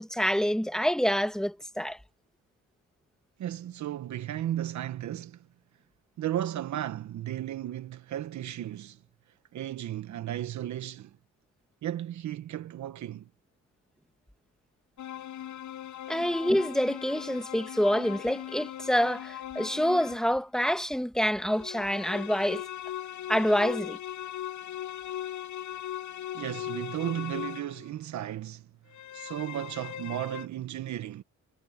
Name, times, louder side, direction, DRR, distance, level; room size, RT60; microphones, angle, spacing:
voice 1, 0.0-2.0 16.1-22.6 23.3-24.0, equal, ahead, 1.9 m, -27 dB
voice 2, 3.4-5.5 6.2-9.0 9.5-11.2 11.8-13.3 26.3-28.7 29.1-31.2, right 12 dB, 70° right, 1.2 m, -34 dB
sound 1, 15.0-20.3 21.4-27.9 28.9-30.5, left 11 dB, 75° left, 7.3 m, -39 dB
cardioid pair, 90°, 30 cm